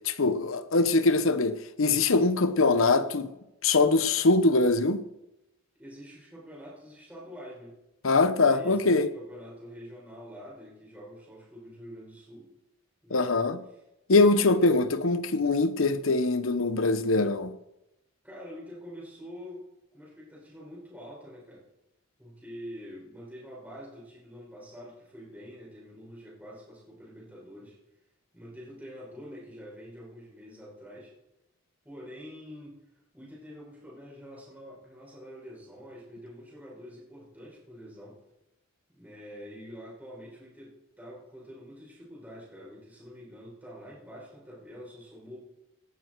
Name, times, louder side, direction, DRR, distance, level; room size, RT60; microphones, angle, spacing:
voice 1, 0.0-3.3 3.6-5.0 8.0-9.1 13.1-13.6 14.1-17.5, left 3 dB, 70° left, 0.9 m, -23 dB
voice 2, 5.8-7.8 8.4-12.5 13.0-13.3 18.2-19.6 19.9-21.6 22.2-27.8 28.3-31.1 31.8-32.7 33.1-38.2 38.9-45.4, equal, 10° right, 5.9 m, -46 dB
17.5 x 11.5 x 4.7 m
head